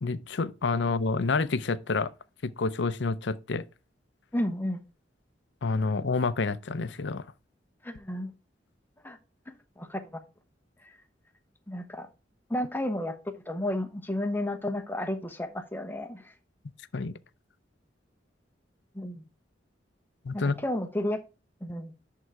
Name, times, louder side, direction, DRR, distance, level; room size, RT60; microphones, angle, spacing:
voice 1, 0.0-2.1 2.4-3.6 5.6-7.2 16.9-17.1 20.2-20.5, left 4 dB, 70° left, 0.6 m, -28 dB
voice 2, 4.3-4.8 7.8-8.3 9.0-9.2 9.5-10.0 11.7-12.1 12.5-13.1 13.5-16.2 18.9-19.2 20.3-21.2 21.6-21.9, left 1 dB, 10° left, 0.9 m, -32 dB
11.0 x 3.8 x 4.6 m
head